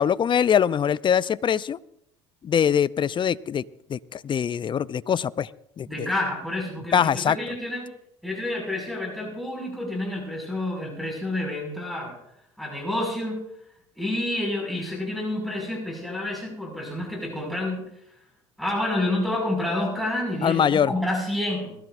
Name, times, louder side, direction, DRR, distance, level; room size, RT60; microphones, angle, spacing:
voice 1, 0.0-1.8 2.4-3.6 3.9-5.5 5.8-6.1 6.9-7.4 20.4-20.9, left 8 dB, 35° left, 18 dB, 0.6 m, -23 dB
voice 2, 5.9-7.8 8.2-12.2 12.6-13.4 14.0-17.9 18.6-21.8, left 1 dB, ahead, -2 dB, 5.9 m, -29 dB
21.0 x 16.0 x 2.6 m, 0.78 s
hypercardioid pair, 70°, 15 cm